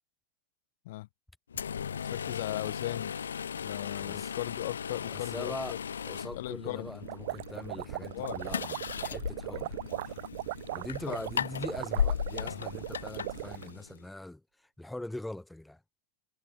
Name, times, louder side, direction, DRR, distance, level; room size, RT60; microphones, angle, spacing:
sound 1, 1.5-14.0, left 7 dB, 90° left, 1.7 m, -37 dB
voice 1, 1.8-3.1 3.5-5.8 6.3-6.9 8.1-8.4 11.1-11.2, left 18 dB, 65° left, 3.1 m, -38 dB
voice 2, 4.0-4.3 5.1-9.8 10.0-10.2 10.7-15.8, left 1 dB, 5° left, 2.9 m, -42 dB
sound 2, 6.9-13.7, right 18 dB, 65° right, 2.8 m, -39 dB
hypercardioid pair, 100°, 0 cm